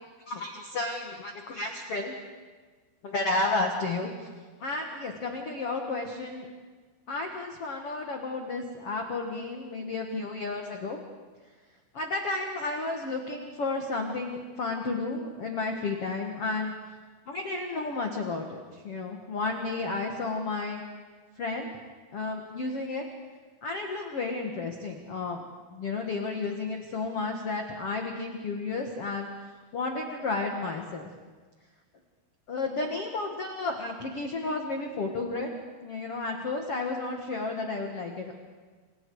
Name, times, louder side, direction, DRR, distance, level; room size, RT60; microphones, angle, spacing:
voice 1, 0.3-2.1 3.0-4.3 4.6-6.5 7.1-11.0 11.9-16.7 17.3-20.8 21.4-21.7 22.1-23.1 23.6-25.4 25.7-29.3 29.7-31.1 32.5-35.5 35.8-38.3, left 3 dB, 75° left, 3 dB, 1.3 m, -32 dB
28.0 x 27.0 x 4.8 m, 1.4 s
omnidirectional pair, 5.6 m